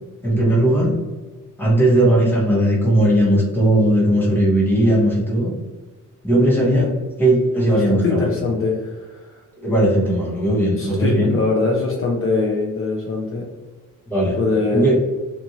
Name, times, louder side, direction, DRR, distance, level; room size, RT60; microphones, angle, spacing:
voice 1, 0.2-0.9 1.6-5.5 6.2-6.9 7.2-8.4 9.6-11.3 14.1-14.4 14.7-15.0, right 1 dB, 5° left, -4 dB, 0.7 m, -17 dB
voice 2, 7.9-9.4 10.8-13.5 14.4-14.9, left 4 dB, 40° left, -1 dB, 0.4 m, -22 dB
2.7 x 2.4 x 2.7 m, 1.3 s
wide cardioid pair, 150°, 32 cm